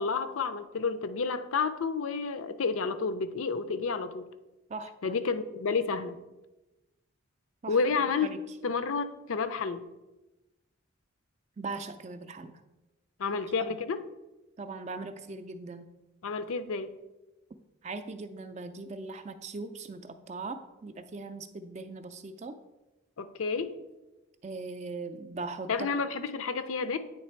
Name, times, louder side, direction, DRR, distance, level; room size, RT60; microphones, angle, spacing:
voice 1, 0.0-4.3 5.0-6.2 7.7-8.3 8.6-9.8 13.2-14.0 16.2-17.0 23.2-23.8 25.7-27.0, left 4 dB, 75° left, 12 dB, 0.5 m, -30 dB
voice 2, 4.7-5.1 7.6-7.8 8.2-8.4 11.6-12.5 13.6-13.7 14.6-15.9 17.8-22.6 24.4-25.9, right 3 dB, 30° right, 9 dB, 0.3 m, -40 dB
9.0 x 3.3 x 4.4 m, 1.0 s
head